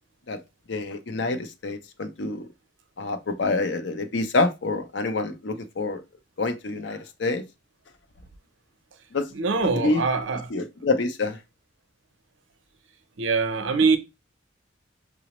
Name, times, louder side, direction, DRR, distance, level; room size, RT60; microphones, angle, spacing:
voice 1, 0.7-2.5 3.0-6.0 6.4-7.4 9.1-9.3 9.8-10.0 10.5-11.4, left 3 dB, 65° left, 0.5 m, -27 dB
voice 2, 9.3-10.5 13.2-14.0, right 4 dB, 75° right, 0.5 m, -23 dB
4.8 x 2.0 x 2.9 m
head